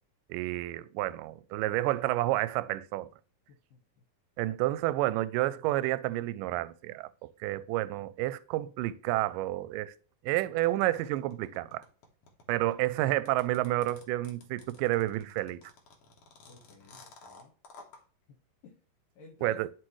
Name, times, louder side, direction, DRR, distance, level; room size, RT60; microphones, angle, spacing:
voice 1, 0.3-3.1 4.4-9.9 10.2-11.8 12.5-15.6 19.4-19.7, right 16 dB, 80° right, 2.1 m, -30 dB
voice 2, 3.5-3.8 16.5-17.5 18.6-18.8 19.2-19.7, left 5 dB, 75° left, 2.7 m, -52 dB
sound 1, 10.6-18.0, left 3 dB, 55° left, 2.0 m, -54 dB
10.5 x 4.6 x 3.1 m
omnidirectional pair, 4.0 m